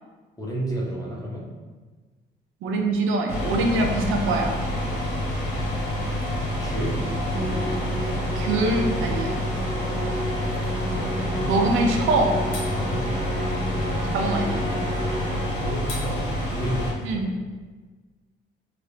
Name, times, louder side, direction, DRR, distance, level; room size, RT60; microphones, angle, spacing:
voice 1, 0.4-1.5 6.6-7.0 10.9-11.5 12.7-13.1 15.6-17.2, right 1 dB, 20° left, -4 dB, 0.9 m, -31 dB
voice 2, 2.6-4.5 8.4-9.4 11.5-12.3 14.1-14.7 17.0-17.3, right 2 dB, 85° right, 2 dB, 0.5 m, -23 dB
sound 1, 3.3-16.9, left 1 dB, 85° left, 1.0 m, -28 dB
Musical instrument, 7.3-15.9, right 1 dB, 40° right, 0.6 m, -32 dB
3.2 x 2.6 x 3.2 m, 1.3 s
cardioid pair, 90°, 20 cm